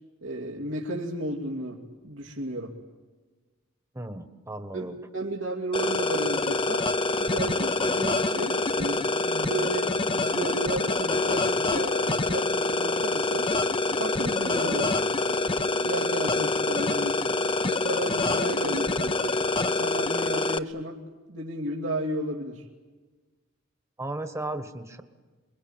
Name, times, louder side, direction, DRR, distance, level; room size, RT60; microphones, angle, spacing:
voice 1, 0.2-2.8 4.7-6.9 7.2-13.5 14.0-19.4 19.7-21.0 21.3-22.7, right 1 dB, 90° right, -3 dB, 2.7 m, -33 dB
voice 2, 3.9-4.9 24.0-25.0, right 2 dB, 15° right, 7 dB, 1.4 m, -35 dB
sound 1, 5.7-20.6, left 2 dB, 25° left, 0.8 m, -26 dB
28.5 x 22.5 x 9.0 m, 1.3 s
head